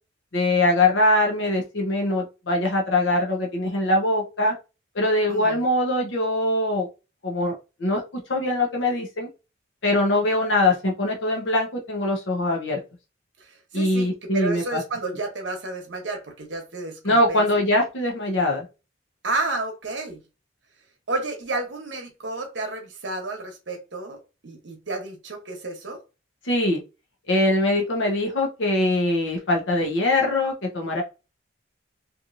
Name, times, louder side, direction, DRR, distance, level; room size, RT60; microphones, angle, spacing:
voice 1, 0.3-4.5 4.9-6.9 7.2-7.5 7.8-9.3 9.8-12.8 13.7-14.8 17.0-18.7 26.4-26.8 27.3-31.0, left 1 dB, 65° left, 0.8 m, -22 dB
voice 2, 5.3-5.6 13.4-17.4 19.2-20.2 21.1-24.2 24.4-26.0, right 2 dB, 60° right, 0.9 m, -31 dB
2.9 x 2.5 x 2.5 m
head